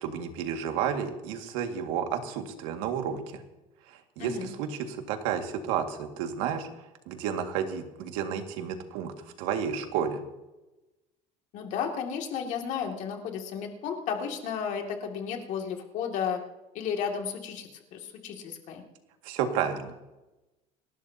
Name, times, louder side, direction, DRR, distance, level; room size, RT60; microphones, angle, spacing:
voice 1, 0.0-3.4 3.9-6.7 7.1-9.1 9.4-10.2 19.2-20.0, right 8 dB, 90° right, 5 dB, 2.0 m, -31 dB
voice 2, 4.2-4.5 11.5-16.4 16.7-18.8, left 7 dB, 55° left, 3 dB, 2.4 m, -33 dB
29.5 x 12.0 x 2.8 m, 1.0 s
cardioid pair, 155°, 16 cm